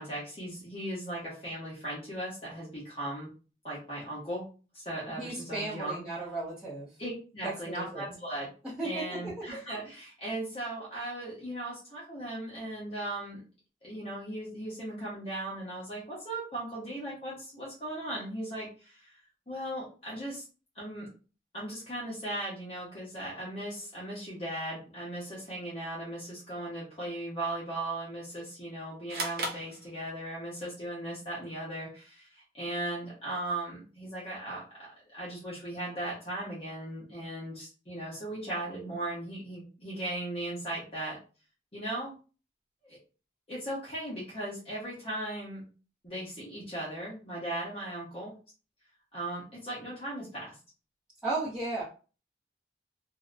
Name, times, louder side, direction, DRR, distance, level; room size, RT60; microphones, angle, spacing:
voice 1, 0.0-3.3 3.6-4.5 4.7-6.0 7.0-8.5 8.8-13.4 13.8-19.2 19.5-20.4 20.7-21.1 21.5-34.6 35.1-41.2 41.7-42.2 42.8-43.0 43.5-45.6 46.0-48.3 49.1-50.6, right 1 dB, 35° left, -7 dB, 0.8 m, -37 dB
voice 2, 5.1-6.9 7.4-8.0 8.8-9.6 51.2-51.8, right 2 dB, 5° right, -11 dB, 0.7 m, -35 dB
sound 1, 29.1-30.5, right 1 dB, 60° right, 0.6 m, -37 dB
2.6 x 2.1 x 2.4 m, 0.35 s
head